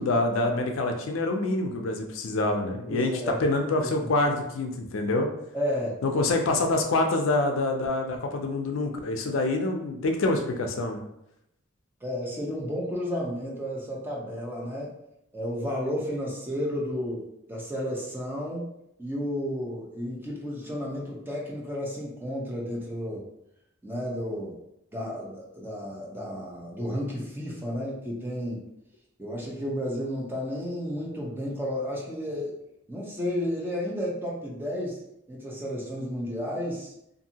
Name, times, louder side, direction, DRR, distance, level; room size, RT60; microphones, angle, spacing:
voice 1, 0.0-5.3 6.0-11.0, left 2 dB, 75° left, 3 dB, 0.4 m, -26 dB
voice 2, 2.9-3.5 3.8-4.1 5.5-6.0 12.0-15.0 15.3-18.7 19.0-23.2 23.8-24.5 24.9-28.6 29.2-32.5 32.9-35.0 35.3-36.9, equal, 10° right, -3 dB, 0.6 m, -32 dB
2.6 x 2.6 x 2.8 m, 0.80 s
head